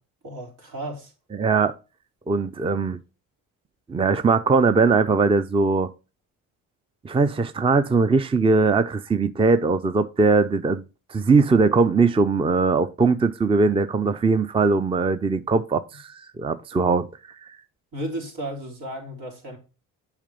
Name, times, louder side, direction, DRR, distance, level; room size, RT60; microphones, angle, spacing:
voice 1, 0.2-1.1 17.9-19.6, right 1 dB, 75° right, 4.0 m, -34 dB
voice 2, 1.3-1.7 2.3-3.0 3.9-5.9 7.0-10.8 11.1-17.1, right 4 dB, 15° right, 0.5 m, -20 dB
7.3 x 5.0 x 5.3 m
supercardioid pair, 70°, 36 cm